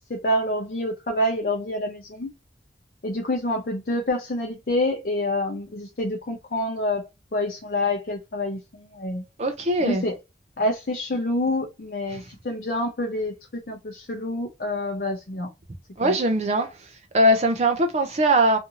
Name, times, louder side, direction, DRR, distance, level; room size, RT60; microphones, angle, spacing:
voice 1, 0.1-2.3 3.0-7.0 7.3-9.2 9.8-10.2 10.6-15.5 16.0-16.2, left 1 dB, 55° left, 0.6 m, -27 dB
voice 2, 9.4-10.0 12.1-12.2 16.0-16.8 17.1-18.6, right 1 dB, 35° right, 0.4 m, -21 dB
2.6 x 2.5 x 2.7 m
head